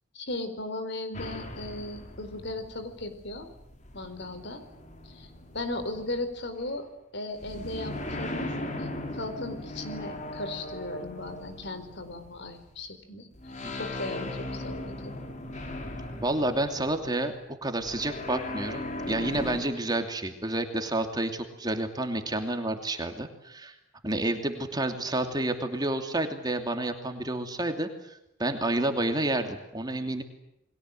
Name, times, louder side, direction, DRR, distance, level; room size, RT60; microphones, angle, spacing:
voice 1, 0.1-3.5 3.9-4.6 5.0-13.3 13.7-15.2, left 2 dB, 60° left, 10 dB, 4.5 m, -37 dB
sound 1, 1.1-6.8 7.4-12.9 13.3-17.2 17.8-19.6, left 1 dB, 35° left, 4.2 m, -38 dB
voice 2, 16.2-17.3 17.6-23.7 24.0-30.2, right 1 dB, 20° right, 6 dB, 2.8 m, -30 dB
30.0 x 22.5 x 7.9 m, 0.85 s
head